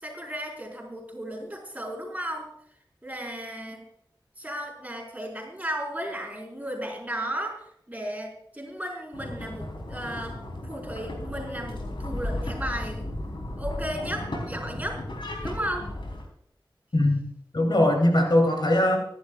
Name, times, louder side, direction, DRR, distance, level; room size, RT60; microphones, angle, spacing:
voice 1, 0.0-2.5 3.0-3.8 4.4-10.4 10.6-13.0 13.6-15.0 15.4-15.9, right 1 dB, 20° right, -1 dB, 5.0 m, -34 dB
sound 1, 9.1-16.2, left 1 dB, 85° left, 3.7 m, -35 dB
voice 2, 16.9-19.0, left 1 dB, 65° left, 2 dB, 3.1 m, -21 dB
24.0 x 11.0 x 2.4 m, 0.72 s
wide cardioid pair, 65°, 8 cm